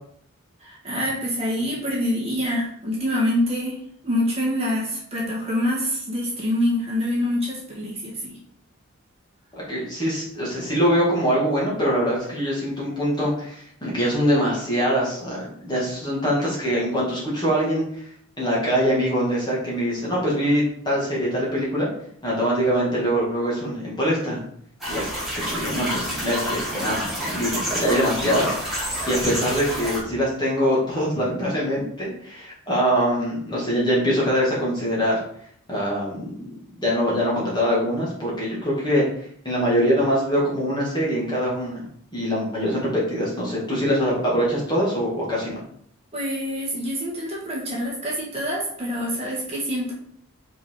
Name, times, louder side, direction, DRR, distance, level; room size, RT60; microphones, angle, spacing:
voice 1, 0.6-8.4 46.1-49.9, left 1 dB, 30° right, -4 dB, 1.8 m, -26 dB
voice 2, 9.6-18.0 18.4-21.9 22.2-24.4 24.9-25.0 25.3-35.2 35.7-36.5 36.7-39.0 39.4-41.8 42.1-45.6, equal, 20° left, -5 dB, 2.5 m, -23 dB
sound 1, 24.8-30.0, equal, ahead, 2.8 m, -28 dB
5.3 x 5.2 x 4.9 m, 0.65 s
head